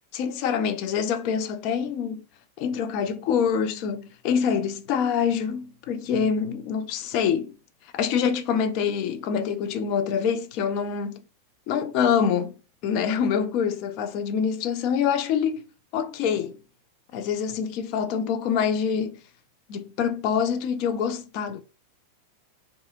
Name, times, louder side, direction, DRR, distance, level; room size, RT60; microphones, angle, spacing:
voice 1, 0.1-2.2 2.6-7.5 7.9-11.2 11.7-12.5 12.8-15.6 15.9-16.6 17.1-19.2 19.7-21.6, left 7 dB, 45° left, 0.4 m, -25 dB
2.6 x 2.4 x 2.4 m
figure-of-eight pair, 90°, 0 cm